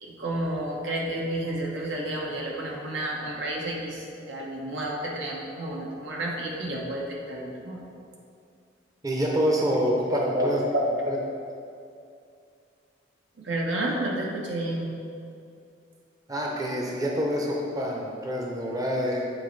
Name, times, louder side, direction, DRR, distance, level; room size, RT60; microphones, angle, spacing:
voice 1, 0.0-7.8 10.1-11.1 13.4-14.9, right 1 dB, 80° right, -2 dB, 1.1 m, -30 dB
voice 2, 9.0-10.6 11.1-11.2 16.3-19.2, equal, 20° right, -2 dB, 0.6 m, -27 dB
7.9 x 4.3 x 3.2 m, 2.4 s
head